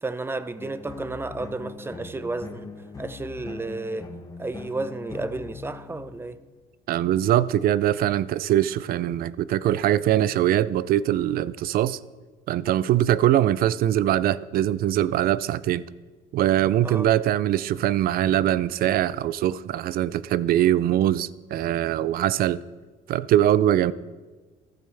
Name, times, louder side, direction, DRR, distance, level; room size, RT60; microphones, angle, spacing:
voice 1, 0.0-2.7 3.0-4.1 4.4-6.4 16.8-17.1, right 3 dB, 15° right, 0.5 m, -32 dB
sound 1, 0.6-6.5, left 4 dB, 20° left, 1.0 m, -41 dB
voice 2, 6.9-12.0 12.5-15.8 16.3-22.6 23.1-23.9, right 12 dB, 60° right, 0.4 m, -22 dB
14.0 x 12.0 x 3.5 m
cardioid pair, 110°, 17 cm